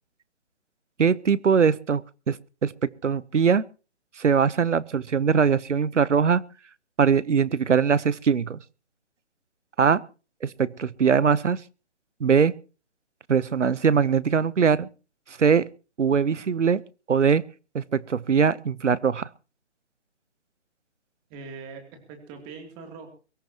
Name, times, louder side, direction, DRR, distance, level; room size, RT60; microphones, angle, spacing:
voice 1, 1.0-2.0 2.3-2.4 2.6-3.6 4.2-6.4 7.0-8.6 9.8-10.0 10.4-11.6 12.2-12.5 13.3-14.9 15.4-15.7 16.0-16.8 17.1-17.4 17.7-19.3, right 6 dB, 90° right, 20 dB, 0.9 m, -21 dB
voice 2, 21.3-23.1, right 4 dB, 15° right, 4 dB, 2.8 m, -42 dB
23.0 x 14.0 x 2.9 m, 0.34 s
hypercardioid pair, 155°, 35 cm